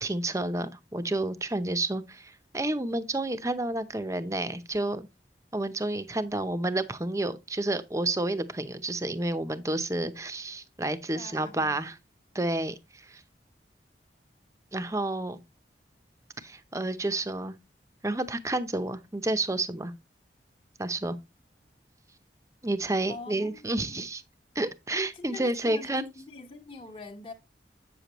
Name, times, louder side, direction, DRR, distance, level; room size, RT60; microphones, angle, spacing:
voice 1, 0.0-5.1 5.5-11.9 12.3-13.2 14.7-15.4 16.4-17.5 18.0-19.9 20.8-21.2 22.6-24.2 24.5-26.1, right 2 dB, 15° right, 0.7 m, -30 dB
voice 2, 11.1-11.8 23.1-24.1 25.1-27.3, left 3 dB, 30° left, 1.2 m, -44 dB
8.5 x 6.8 x 3.0 m
head